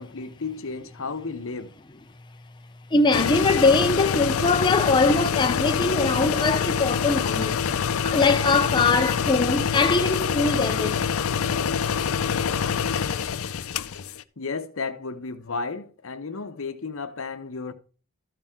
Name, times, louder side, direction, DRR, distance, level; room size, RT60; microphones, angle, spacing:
voice 1, 0.0-1.7 14.4-17.7, left 4 dB, 70° left, 0.9 m, -33 dB
voice 2, 2.9-7.6 8.0-11.0, left 3 dB, 20° left, 0.5 m, -22 dB
sound 1, 3.1-14.2, left 7 dB, 85° left, 0.5 m, -25 dB
13.0 x 6.0 x 3.6 m
head